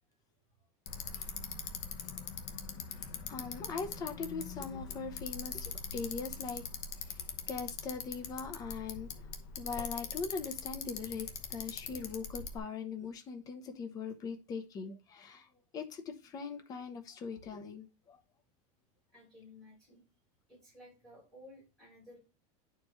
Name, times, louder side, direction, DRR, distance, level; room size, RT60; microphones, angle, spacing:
Bicycle, 0.9-12.6, left 6 dB, 45° left, 1.1 m, -42 dB
voice 1, 3.3-6.6 7.1-7.2 7.5-9.1 9.6-18.2, left 5 dB, 20° left, 6 dB, 0.8 m, -41 dB
voice 2, 19.1-20.0 20.5-22.2, left 1 dB, 5° left, -7 dB, 5.0 m, -55 dB
10.0 x 4.6 x 3.1 m, 0.30 s
supercardioid pair, 180°, 19 cm